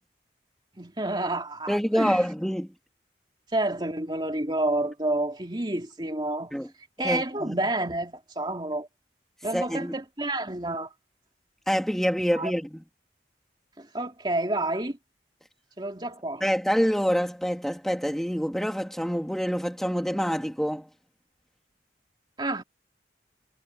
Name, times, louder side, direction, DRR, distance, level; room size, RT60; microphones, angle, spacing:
voice 1, 0.8-2.3 3.5-6.5 7.0-8.9 9.4-10.9 12.4-12.6 13.8-15.0 15.8-16.4 22.4-22.6, right 1 dB, 25° right, 2.8 m, -29 dB
voice 2, 1.7-2.7 6.5-6.7 7.0-7.6 9.5-9.9 11.7-12.8 16.4-20.9, equal, ahead, 3.2 m, -26 dB
head